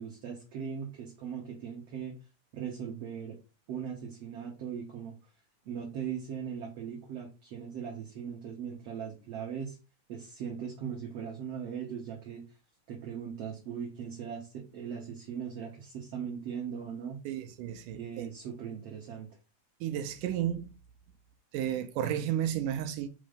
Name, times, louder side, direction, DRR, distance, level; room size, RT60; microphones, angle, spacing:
voice 1, 0.0-2.1 2.5-3.4 3.7-5.1 5.7-9.8 10.1-12.4 12.9-17.2 17.9-19.3, right 7 dB, 60° right, 2.0 m, -39 dB
voice 2, 17.3-18.3 19.8-20.7 21.5-23.1, right 10 dB, 80° right, 2.2 m, -32 dB
6.1 x 3.1 x 5.0 m
omnidirectional pair, 3.8 m